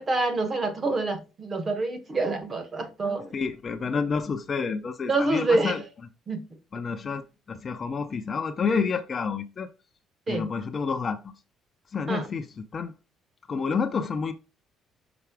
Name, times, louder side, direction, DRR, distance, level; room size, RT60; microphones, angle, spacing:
voice 1, 0.0-3.3 5.1-5.9 6.3-6.4 10.3-10.5 12.1-12.3, right 2 dB, 25° right, 0.9 m, -27 dB
voice 2, 3.3-5.8 6.7-9.7 10.3-11.3 11.9-12.5 12.7-12.9 13.5-14.3, left 5 dB, 25° left, 0.5 m, -29 dB
5.9 x 4.7 x 3.4 m
cardioid pair, 175°, 0 cm